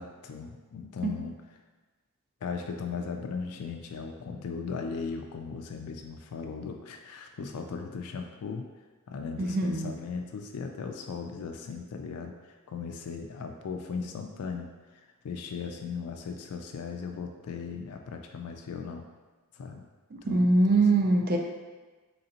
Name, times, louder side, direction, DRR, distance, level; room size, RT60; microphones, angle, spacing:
voice 1, 0.0-1.3 2.4-8.7 9.1-19.0 19.5-19.8 20.2-20.8, left 5 dB, 80° left, 3 dB, 0.4 m, -37 dB
voice 2, 9.4-9.9 20.3-21.4, right 2 dB, 40° right, 2 dB, 0.4 m, -23 dB
3.9 x 3.2 x 2.8 m, 1.3 s
head